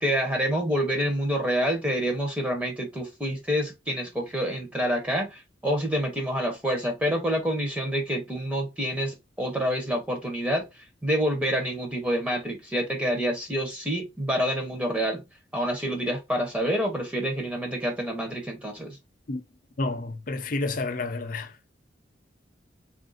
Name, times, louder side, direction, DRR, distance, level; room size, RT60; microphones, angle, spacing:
voice 1, 0.0-15.2 15.5-19.0, equal, 5° right, 0.7 m, -27 dB
voice 2, 19.8-21.5, left 2 dB, 45° left, 0.6 m, -30 dB
3.5 x 2.5 x 3.9 m
head